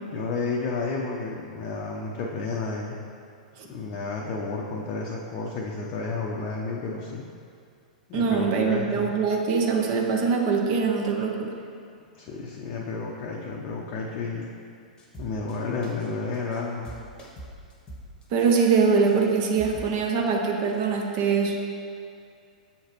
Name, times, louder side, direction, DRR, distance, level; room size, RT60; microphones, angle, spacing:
voice 1, 0.1-3.0 3.7-7.2 8.1-9.2 12.2-14.5 15.2-16.9, left 4 dB, 35° left, -3 dB, 0.6 m, -31 dB
voice 2, 8.1-11.5 18.3-21.6, right 5 dB, 40° right, 1 dB, 0.6 m, -23 dB
sound 1, 15.0-15.6 15.8-16.1 16.3-16.6 16.8-18.6 19.1-19.2 19.6-19.9, right 1 dB, 20° left, 0.9 m, -43 dB
7.1 x 4.7 x 3.0 m, 2.3 s
figure-of-eight pair, 100°, 4 cm